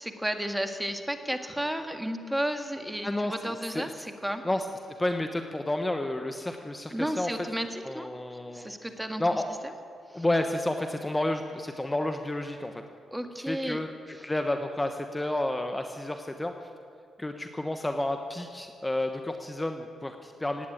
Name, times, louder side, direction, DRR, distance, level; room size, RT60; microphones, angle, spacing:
voice 1, 0.0-4.4 6.9-8.1 8.5-9.2 10.1-10.2 13.1-13.8 14.1-14.2, equal, 10° right, 6 dB, 1.8 m, -33 dB
voice 2, 3.0-3.9 4.4-4.7 5.0-7.3 7.8-8.7 9.2-9.4 10.1-12.7 13.4-16.5 17.2-20.7, left 1 dB, 15° left, 6 dB, 1.1 m, -31 dB
17.0 x 9.3 x 9.1 m, 2.4 s
supercardioid pair, 50°, 0 cm